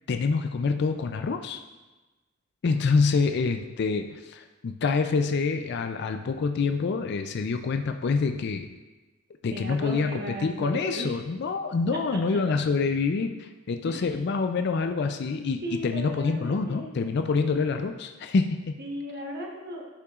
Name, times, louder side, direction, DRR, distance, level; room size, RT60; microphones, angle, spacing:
voice 1, 0.1-1.6 2.6-8.7 9.4-18.8, left 4 dB, 55° left, 6 dB, 0.4 m, -26 dB
voice 2, 9.5-11.2 11.9-12.4 13.8-14.2 15.6-16.9 18.8-19.9, equal, 50° right, -1 dB, 1.1 m, -36 dB
11.5 x 5.7 x 2.4 m, 1.2 s
head